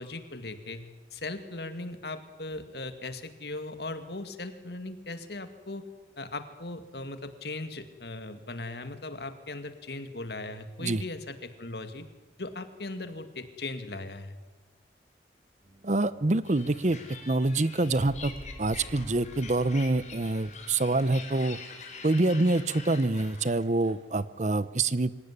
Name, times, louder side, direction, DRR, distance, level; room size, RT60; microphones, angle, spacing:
voice 1, 0.0-5.9 6.2-12.1 12.4-14.4, left 2 dB, 65° left, 9 dB, 2.2 m, -38 dB
sound 1, 15.6-22.3, equal, ahead, 3.6 m, -50 dB
voice 2, 15.8-17.0 17.3-18.3 18.6-21.6 22.0-25.1, right 2 dB, 40° right, 17 dB, 0.8 m, -26 dB
sound 2, 16.4-23.9, left 5 dB, 40° left, 4.0 m, -46 dB
25.5 x 17.0 x 9.9 m, 1.2 s
head